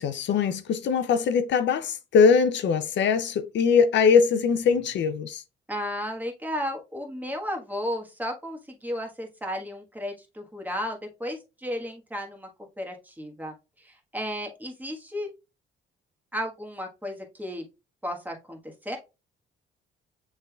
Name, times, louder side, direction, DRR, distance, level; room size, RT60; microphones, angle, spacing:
voice 1, 0.0-5.4, left 6 dB, 65° left, 0.5 m, -22 dB
voice 2, 5.7-12.5 12.8-15.3 16.3-17.6 18.0-19.0, equal, 10° right, 1.3 m, -34 dB
6.6 x 3.4 x 2.3 m
cardioid pair, 90°, 20 cm